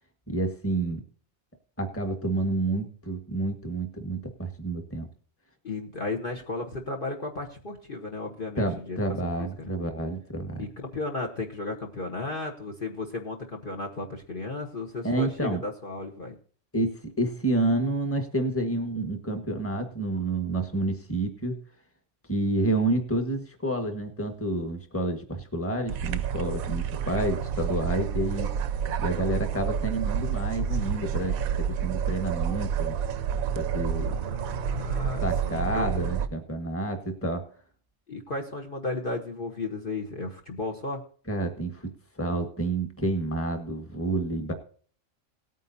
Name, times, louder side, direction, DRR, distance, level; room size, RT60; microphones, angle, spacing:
voice 1, 0.3-1.0 1.8-5.1 8.6-10.7 15.0-15.6 16.7-16.9 17.2-21.6 22.3-28.5 29.0-33.0 33.5-34.2 35.2-37.4 41.3-41.9 42.2-44.5, right 2 dB, 10° left, 5 dB, 1.5 m, -29 dB
voice 2, 5.6-9.0 9.4-9.7 10.6-16.3 34.0-35.9 38.1-41.0, left 3 dB, 40° left, 4 dB, 1.3 m, -34 dB
sound 1, 25.9-36.3, right 8 dB, 85° right, 1.1 m, -29 dB
18.0 x 9.2 x 2.7 m, 0.44 s
omnidirectional pair, 1.4 m